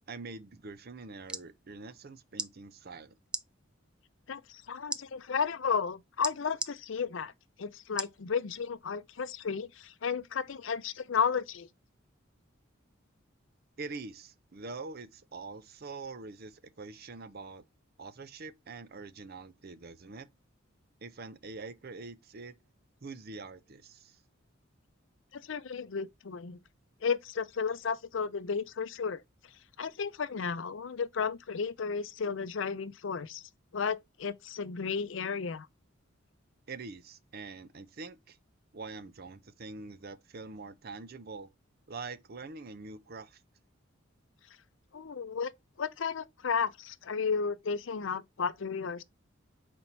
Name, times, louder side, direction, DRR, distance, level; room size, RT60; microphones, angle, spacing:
voice 1, 0.1-3.1 13.8-17.6 18.0-20.3 21.0-22.5 23.0-24.2 36.7-38.4 38.7-41.5 41.9-43.4, right 3 dB, 50° right, 0.6 m, -44 dB
sound 1, 1.0-1.5 2.3-2.5 3.3-3.4 4.9-5.0 6.2-6.7 8.0-8.2 8.8-8.9, right 2 dB, 5° right, 0.3 m, -35 dB
voice 2, 4.3-7.3 7.6-11.7 25.3-26.6 27.0-29.2 29.8-33.4 33.7-35.7 44.9-45.5 45.8-49.0, left 6 dB, 65° left, 0.5 m, -33 dB
5.4 x 4.3 x 4.4 m
head